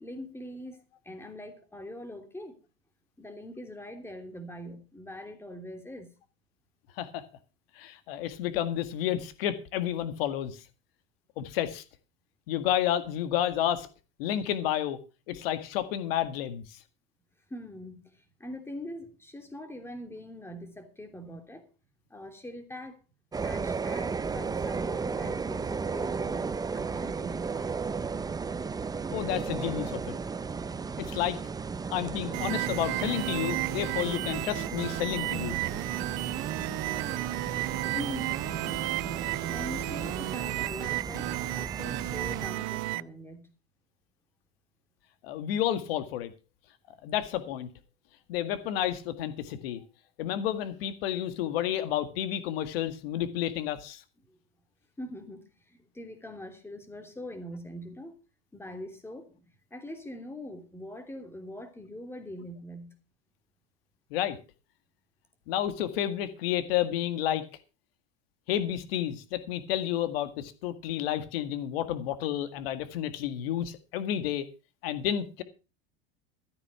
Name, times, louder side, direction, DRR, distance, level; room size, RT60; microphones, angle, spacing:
voice 1, 0.0-2.6 3.2-6.1 17.5-21.7 22.1-23.0 23.4-27.5 37.9-38.7 39.5-43.5 54.3-54.4 55.0-58.2 58.5-63.0, left 1 dB, 10° left, 3.0 m, -43 dB
voice 2, 7.8-10.6 11.4-11.8 12.5-13.9 14.2-15.0 15.3-16.6 29.1-30.1 31.0-31.4 31.9-35.5 45.2-46.3 47.0-47.7 48.3-49.8 50.2-54.0 64.1-64.4 65.5-67.4 68.5-74.5 74.8-75.4, left 11 dB, 80° left, 1.9 m, -30 dB
sound 1, 23.3-42.5, right 5 dB, 15° right, 0.6 m, -35 dB
sound 2, 32.3-43.0, right 21 dB, 60° right, 0.6 m, -33 dB
14.0 x 8.5 x 5.7 m
supercardioid pair, 120°, 29 cm